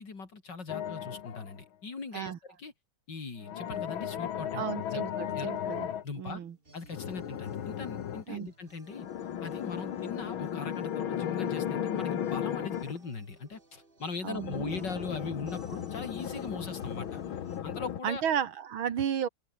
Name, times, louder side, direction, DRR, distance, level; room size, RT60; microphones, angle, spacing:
voice 1, 0.0-2.7 3.1-4.6 4.9-5.0 5.3-5.5 6.0-6.4 6.7-9.1 9.4-17.2 17.6-18.2, left 4 dB, 60° left, 4.0 m, -40 dB
sound 1, 0.7-1.6 3.4-6.0 6.9-8.2 8.9-13.0 14.3-18.0, left 9 dB, 85° left, 2.1 m, -35 dB
voice 2, 4.5-5.9 6.2-6.6 8.3-8.5 14.2-14.8 18.0-19.3, right 8 dB, 85° right, 2.4 m, -33 dB
sound 2, 5.3-17.6, right 2 dB, 25° right, 3.4 m, -58 dB
open air
omnidirectional pair, 2.2 m